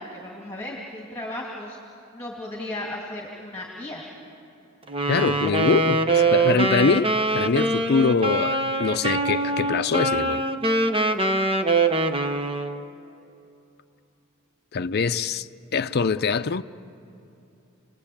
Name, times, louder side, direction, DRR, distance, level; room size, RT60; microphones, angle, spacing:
voice 1, 0.0-1.8 2.1-4.1, left 1 dB, 15° left, 2.8 m, -35 dB
Wind instrument woodwind instrument, 4.9-12.9, right 2 dB, 25° right, 1.0 m, -23 dB
voice 2, 5.1-10.4 14.7-16.6, left 4 dB, 50° left, 0.6 m, -24 dB
30.0 x 19.5 x 8.7 m
head